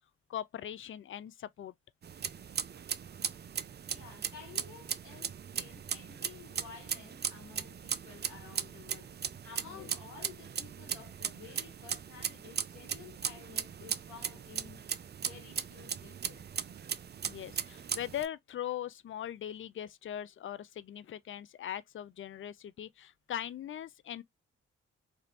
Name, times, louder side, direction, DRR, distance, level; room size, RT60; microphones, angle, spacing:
voice 1, 0.3-1.7 9.6-9.9 17.3-24.2, left 10 dB, 45° left, 0.4 m, -40 dB
sound 1, 2.0-18.3, right 8 dB, 35° right, 0.4 m, -38 dB
voice 2, 3.8-14.8 15.2-16.4, left 6 dB, 80° left, 1.2 m, -52 dB
3.3 x 2.5 x 2.7 m
supercardioid pair, 40°, 29 cm